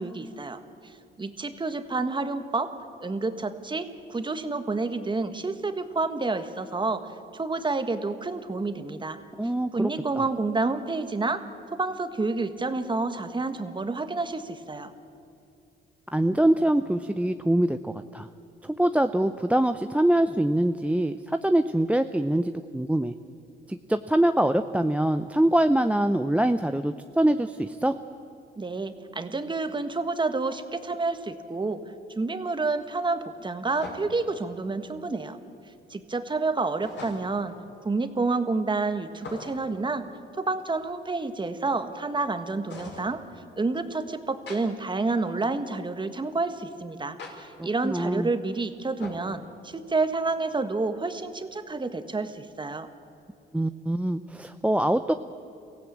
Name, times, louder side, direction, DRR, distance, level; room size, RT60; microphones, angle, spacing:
voice 1, 0.0-9.2 9.7-11.4 11.7-14.9 28.6-31.8 32.1-35.4 35.9-37.6 37.8-40.1 40.3-43.2 43.6-52.9, right 3 dB, 25° right, 9 dB, 1.5 m, -29 dB
voice 2, 9.4-9.9 10.2-10.3 16.1-18.3 18.6-23.1 23.7-28.0 47.6-48.3 53.5-55.1, right 1 dB, 5° right, 10 dB, 0.6 m, -24 dB
sound 1, 31.1-31.2 33.8-34.3 36.8-37.5 39.1-39.8 42.7-43.1 44.5-44.6 47.2-47.3 49.0-49.3, left 3 dB, 65° left, 5.3 m, -41 dB
23.5 x 16.0 x 8.6 m, 2.7 s
cardioid pair, 90°, 20 cm